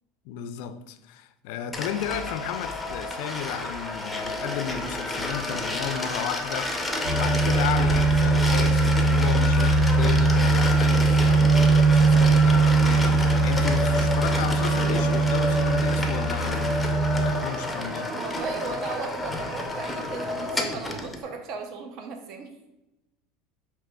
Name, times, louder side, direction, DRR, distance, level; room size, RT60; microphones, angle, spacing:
voice 1, 0.3-18.1, left 9 dB, 70° left, 0.3 m, -34 dB
sound 1, 1.7-21.2, left 2 dB, 5° left, 0.5 m, -30 dB
sound 2, 7.0-17.3, right 3 dB, 70° right, 0.9 m, -21 dB
voice 2, 18.0-22.5, right 4 dB, 55° right, 0.5 m, -36 dB
5.9 x 2.9 x 2.2 m
supercardioid pair, 125°, 0 cm